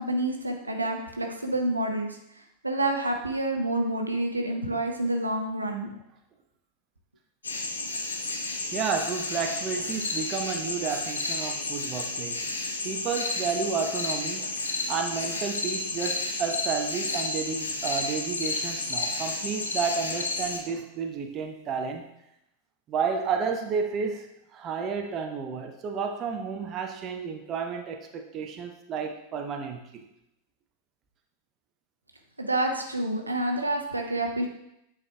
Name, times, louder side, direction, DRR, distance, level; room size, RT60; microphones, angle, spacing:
voice 1, 0.0-5.9 32.4-34.5, right 1 dB, 80° right, 3 dB, 0.7 m, -28 dB
sound 1, 7.4-20.6, left 3 dB, 75° left, 0.7 m, -31 dB
voice 2, 8.7-12.5 12.8-22.0 22.9-24.3 24.5-30.0, right 6 dB, 30° right, 4 dB, 0.7 m, -31 dB
8.6 x 4.9 x 2.2 m, 0.81 s
figure-of-eight pair, 90°, 0 cm